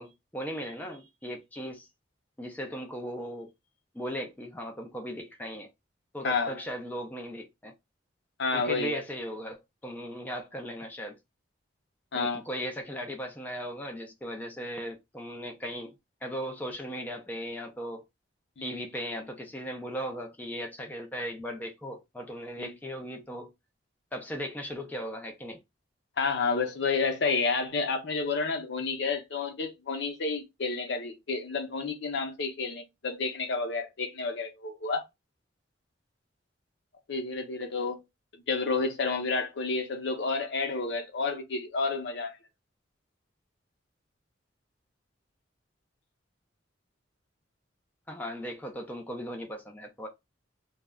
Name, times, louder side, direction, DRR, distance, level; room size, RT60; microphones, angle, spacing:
voice 1, 0.0-1.9 2.4-3.5 3.9-5.7 6.1-7.7 8.5-11.2 12.1-15.9 16.2-18.0 18.6-23.5 24.1-25.6 48.1-50.1, equal, 10° left, 0.4 m, -37 dB
voice 2, 6.2-6.6 8.4-9.0 12.1-12.4 18.6-18.7 22.6-22.7 26.2-35.0 37.1-38.0 38.5-42.3, left 4 dB, 65° left, 0.7 m, -30 dB
2.3 x 2.1 x 3.4 m
head